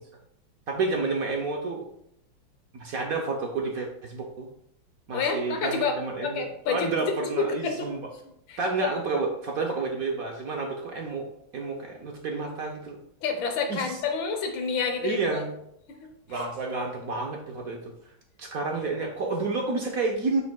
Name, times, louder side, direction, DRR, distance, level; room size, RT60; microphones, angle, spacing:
voice 1, 0.7-1.8 2.7-4.5 5.1-8.0 8.6-11.3 11.5-13.0 13.7-14.0 15.0-15.5 16.3-17.9 18.4-20.4, right 3 dB, 60° right, 1 dB, 1.0 m, -30 dB
voice 2, 5.1-6.0 6.2-7.9 8.5-8.9 13.2-15.4, left 5 dB, 80° left, 5 dB, 1.7 m, -29 dB
7.3 x 6.6 x 2.3 m, 0.73 s
omnidirectional pair, 2.2 m